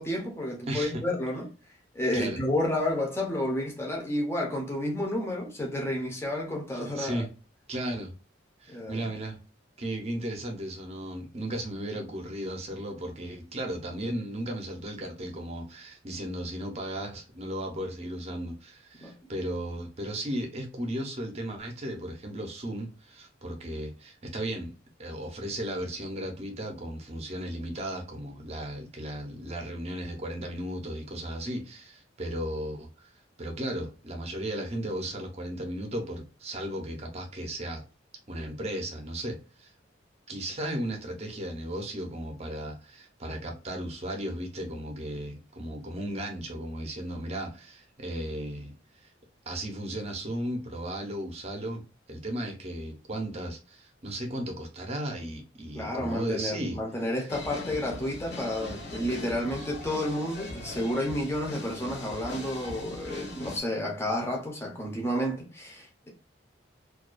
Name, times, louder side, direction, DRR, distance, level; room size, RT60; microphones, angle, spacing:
voice 1, 0.0-1.5 1.9-7.2 8.7-9.1 19.0-19.1 55.7-66.1, left 1 dB, 15° left, 0.5 m, -31 dB
voice 2, 0.7-1.1 2.1-2.4 6.7-7.3 7.7-8.1 8.6-9.4 9.8-24.7 25.0-33.1 33.4-37.8 38.3-39.7 40.3-49.1 49.5-56.8, right 1 dB, 35° right, 0.6 m, -35 dB
sound 1, 57.3-63.6, left 2 dB, 55° left, 0.8 m, -40 dB
2.3 x 2.2 x 2.3 m
head